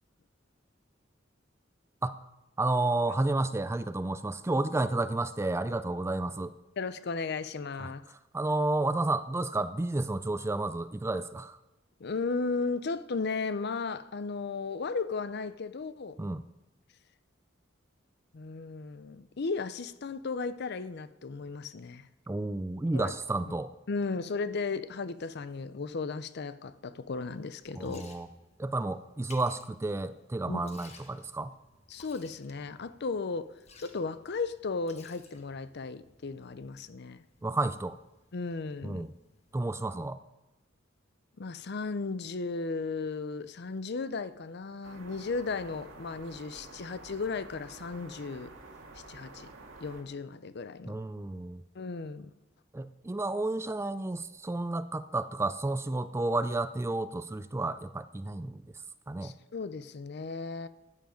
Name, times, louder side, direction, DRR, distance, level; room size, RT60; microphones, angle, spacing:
voice 1, 2.6-6.6 7.8-7.9 8.3-11.6 16.2-16.4 22.3-23.7 27.8-28.3 28.6-31.6 37.4-38.0 38.8-39.1 39.5-40.2 50.8-51.6 52.7-58.6 59.1-59.4, right 2 dB, 15° right, 0.4 m, -31 dB
voice 2, 6.8-8.0 12.0-16.2 18.3-22.1 22.9-23.1 23.5-23.6 23.9-28.1 30.5-30.7 31.9-37.2 38.3-39.1 41.4-48.5 49.1-49.5 49.8-51.0 51.7-52.3 59.2-60.7, left 4 dB, 55° left, 0.6 m, -35 dB
Liquid, 27.3-39.7, left 4 dB, 35° left, 1.4 m, -59 dB
sound 1, 44.8-50.0, right 2 dB, 75° right, 2.0 m, -50 dB
13.5 x 9.4 x 5.2 m
head